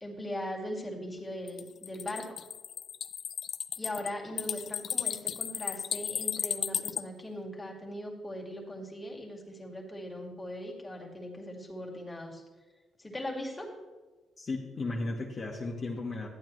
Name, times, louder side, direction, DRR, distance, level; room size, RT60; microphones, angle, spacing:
voice 1, 0.0-2.4 3.8-12.4 13.0-13.8, left 1 dB, 15° left, -1 dB, 2.2 m, -39 dB
sound 1, 1.5-7.0, left 9 dB, 65° left, 0.4 m, -34 dB
voice 2, 14.4-16.3, left 2 dB, 40° left, -2 dB, 1.3 m, -35 dB
12.5 x 8.8 x 3.2 m, 1.3 s
cardioid pair, 90°, 0 cm